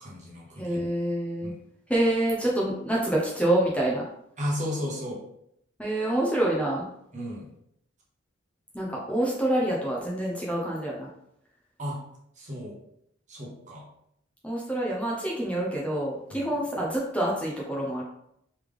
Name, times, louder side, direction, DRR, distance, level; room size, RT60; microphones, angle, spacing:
voice 1, 0.0-0.8 1.4-1.6 4.4-5.2 7.1-7.5 11.8-12.0 12.4-12.8 13.3-13.9 16.3-16.5, equal, 40° right, -3 dB, 1.1 m, -34 dB
voice 2, 0.6-1.5 1.9-4.0 5.8-6.8 8.7-11.1 14.4-18.0, right 1 dB, 5° left, -4 dB, 0.6 m, -27 dB
3.3 x 3.3 x 3.5 m, 0.73 s
head